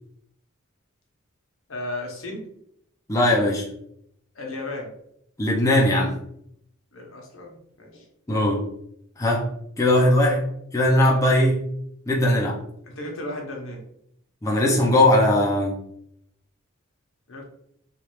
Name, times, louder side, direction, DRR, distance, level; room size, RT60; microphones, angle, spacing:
voice 1, 1.7-2.4 4.3-4.9 6.9-8.1 10.2-10.4 12.9-13.8 17.3-17.4, left 2 dB, 75° left, 0 dB, 0.8 m, -34 dB
voice 2, 3.1-3.7 5.4-6.2 8.3-8.6 9.2-9.4 9.8-10.4 10.7-11.6 12.1-12.6 14.4-15.8, left 1 dB, 15° left, -3 dB, 0.5 m, -19 dB
3.2 x 2.4 x 3.0 m, 0.71 s
head